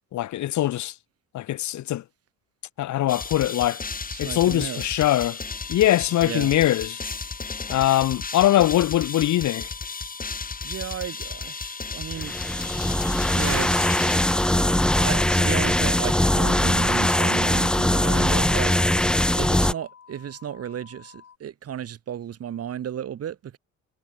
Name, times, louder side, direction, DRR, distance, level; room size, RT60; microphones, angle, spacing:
voice 1, 0.1-0.9 1.3-2.0 2.8-3.9 4.2-5.4 5.7-7.0 7.7-9.7, left 14 dB, 70° left, 1.0 m, -22 dB
sound 1, 3.1-15.0, left 4 dB, 30° left, 3.5 m, -34 dB
voice 2, 4.1-5.0 6.2-6.5 10.6-12.3 13.3-13.9 15.0-18.7 19.4-23.6, right 9 dB, 55° right, 1.3 m, -34 dB
sound 2, 5.5-21.4, left 7 dB, 50° left, 6.5 m, -50 dB
sound 3, 12.2-19.7, left 1 dB, 5° left, 0.4 m, -21 dB
cardioid pair, 90°, 30 cm